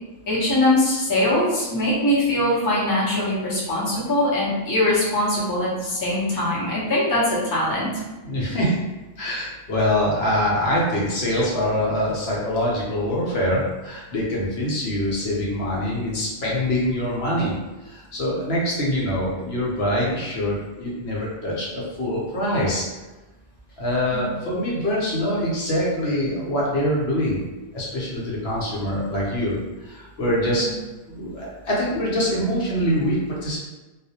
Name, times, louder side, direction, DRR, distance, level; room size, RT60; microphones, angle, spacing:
voice 1, 0.3-7.9 24.1-24.2, left 1 dB, 25° left, -8 dB, 0.5 m, -22 dB
voice 2, 8.2-8.8 9.2-17.5 17.8-22.8 23.8-27.4 27.7-29.5 29.8-30.7 31.1-33.6, equal, 65° left, -5 dB, 0.8 m, -24 dB
2.3 x 2.0 x 2.7 m, 1.1 s
omnidirectional pair, 1.2 m